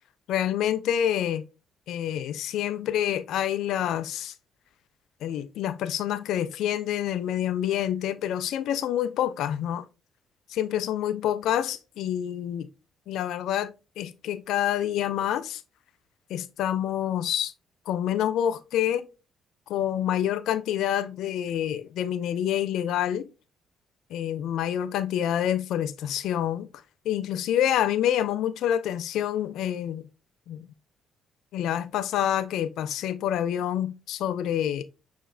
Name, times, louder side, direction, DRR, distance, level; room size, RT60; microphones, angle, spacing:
voice 1, 0.3-1.4 1.9-4.3 5.2-9.8 10.5-12.7 13.1-15.6 16.3-17.5 17.9-19.1 19.7-23.3 24.1-26.7 27.1-30.1 30.5-30.7 31.5-34.8, left 10 dB, 60° left, 0.3 m, -27 dB
6.4 x 3.2 x 2.4 m
figure-of-eight pair, 45°, 0 cm